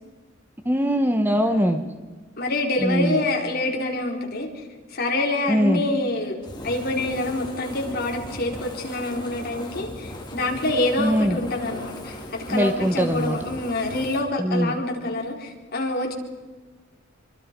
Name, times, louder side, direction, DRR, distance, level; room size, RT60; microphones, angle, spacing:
voice 1, 0.6-1.8 2.8-3.2 5.5-5.8 11.0-11.4 12.5-13.4 14.4-14.8, equal, 10° right, 7 dB, 1.2 m, -22 dB
voice 2, 2.4-4.5 4.9-6.3 6.6-16.1, left 2 dB, 50° left, 1 dB, 4.3 m, -26 dB
Fire, 6.4-14.2, left 1 dB, 20° left, 3.4 m, -38 dB
26.5 x 25.0 x 5.3 m, 1.3 s
head